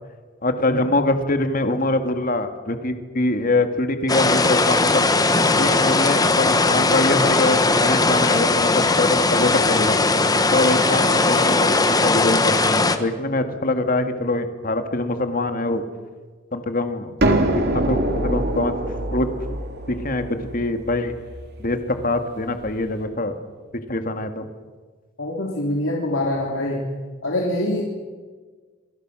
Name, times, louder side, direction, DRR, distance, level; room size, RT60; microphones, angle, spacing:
voice 1, 0.4-5.1 5.6-10.0 10.5-15.8 16.5-17.1 17.5-18.7 19.1-19.3 19.9-21.1 21.6-23.4 23.9-24.5, left 2 dB, 45° left, 7 dB, 2.1 m, -24 dB
sound 1, 4.1-13.0, left 3 dB, 20° left, 1.4 m, -19 dB
sound 2, 17.2-22.8, right 1 dB, 55° right, 3.2 m, -25 dB
voice 2, 25.2-26.9 27.2-27.8, left 1 dB, 90° left, -1 dB, 3.4 m, -24 dB
27.0 x 24.5 x 6.3 m, 1.4 s
head